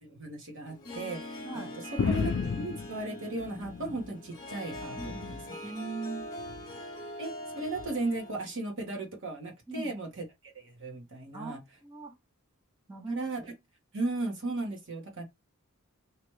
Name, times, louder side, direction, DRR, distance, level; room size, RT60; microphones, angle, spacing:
voice 1, 0.0-1.7 2.1-2.3 2.6-5.7 7.2-11.6 13.1-13.5 13.9-15.2, right 2 dB, 60° right, 1.2 m, -36 dB
Harp, 0.7-8.6, left 1 dB, 20° left, 1.1 m, -43 dB
voice 2, 1.4-1.7 5.0-5.4 5.6-6.3 9.7-9.9 11.3-12.1 12.9-13.3, right 3 dB, 15° right, 0.8 m, -40 dB
sound 1, 2.0-4.2 4.6-5.5 6.4-6.8 7.8-7.9, left 5 dB, 55° left, 0.4 m, -34 dB
3.0 x 2.4 x 3.1 m
head